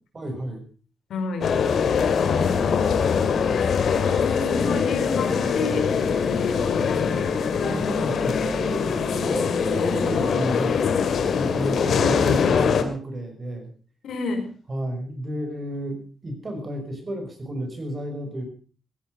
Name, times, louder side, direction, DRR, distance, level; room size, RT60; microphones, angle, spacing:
voice 1, 0.1-0.6 7.6-10.8 11.3-13.7 14.7-18.5, right 1 dB, 30° right, 6 dB, 6.0 m, -32 dB
voice 2, 1.1-1.5 4.3-5.9 6.3-7.8 14.0-14.5, left 3 dB, 90° left, 5 dB, 5.0 m, -31 dB
sound 1, 1.4-12.8, left 6 dB, 70° left, 2.7 m, -22 dB
16.5 x 15.5 x 5.3 m, 0.40 s
wide cardioid pair, 130°, 0 cm